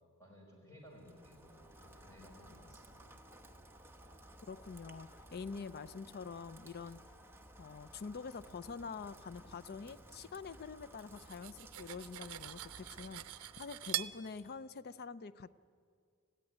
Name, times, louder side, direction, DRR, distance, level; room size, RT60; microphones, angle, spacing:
voice 1, 0.2-3.2, equal, 15° left, -1 dB, 5.2 m, -58 dB
Rain, 0.9-14.7, right 1 dB, 10° right, 1.1 m, -57 dB
voice 2, 4.5-7.0 7.6-15.5, left 5 dB, 45° left, 16 dB, 0.5 m, -46 dB
Cutlery silverware, 11.0-14.2, right 14 dB, 85° right, 0.6 m, -43 dB
20.5 x 15.0 x 10.0 m, 2.2 s
head